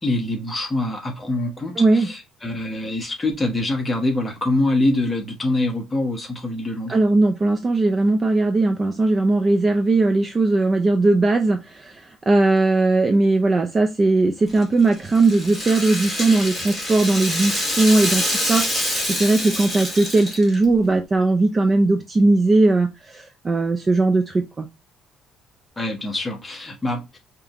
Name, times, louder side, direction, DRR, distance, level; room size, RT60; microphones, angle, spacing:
voice 1, 0.0-7.0 25.8-27.2, left 2 dB, 10° left, 1.0 m, -24 dB
voice 2, 1.8-2.1 6.9-18.7 19.1-24.7, right 2 dB, 20° right, 0.4 m, -19 dB
Rattle (instrument), 14.5-20.7, left 1 dB, 5° right, 1.5 m, -26 dB
4.9 x 2.9 x 2.5 m
cardioid pair, 165°, 0 cm